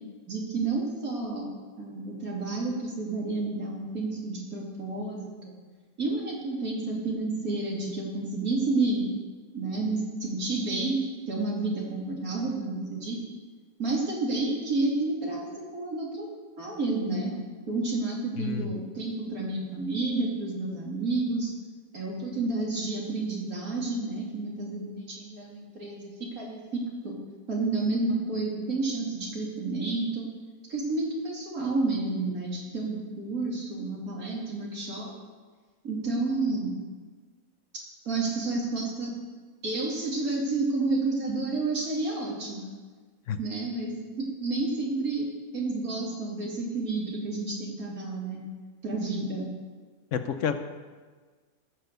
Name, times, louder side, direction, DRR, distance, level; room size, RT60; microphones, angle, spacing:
voice 1, 0.3-1.5 1.8-5.5 6.0-9.0 9.5-13.2 13.8-16.3 16.6-17.3 17.7-21.5 21.9-27.1 27.5-30.3 30.7-35.1 35.8-36.7 38.0-39.1 39.6-42.7 43.4-48.4 48.8-49.5, right 3 dB, 90° right, -3 dB, 3.1 m, -30 dB
voice 2, 18.4-18.7 43.3-43.4 50.1-50.6, left 7 dB, 65° left, 9 dB, 1.0 m, -29 dB
14.5 x 6.5 x 6.7 m, 1.4 s
omnidirectional pair, 1.5 m